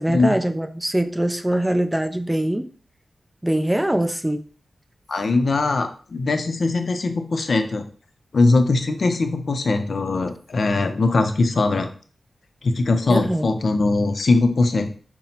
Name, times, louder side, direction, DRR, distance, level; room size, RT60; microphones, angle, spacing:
voice 1, 0.0-2.7 3.4-4.4 13.1-13.5, right 1 dB, 10° right, 8 dB, 0.3 m, -22 dB
voice 2, 5.1-7.9 8.3-11.9 12.6-14.9, left 3 dB, 65° left, 7 dB, 0.4 m, -21 dB
5.7 x 2.0 x 2.7 m, 0.41 s
wide cardioid pair, 85°, 0 cm